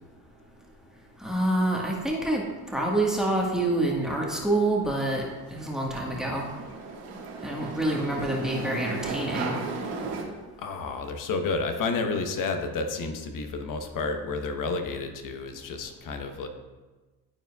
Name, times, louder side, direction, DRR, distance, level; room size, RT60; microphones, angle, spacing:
voice 1, 1.2-2.4 2.7-5.2 5.5-6.4 7.4-9.5, right 1 dB, ahead, -2 dB, 1.5 m, -27 dB
sound 1, 4.8-10.2, right 4 dB, 65° right, 1.7 m, -36 dB
voice 2, 10.6-16.5, left 3 dB, 45° left, 6 dB, 1.0 m, -30 dB
12.0 x 4.4 x 2.3 m, 1.2 s
supercardioid pair, 85°, 44 cm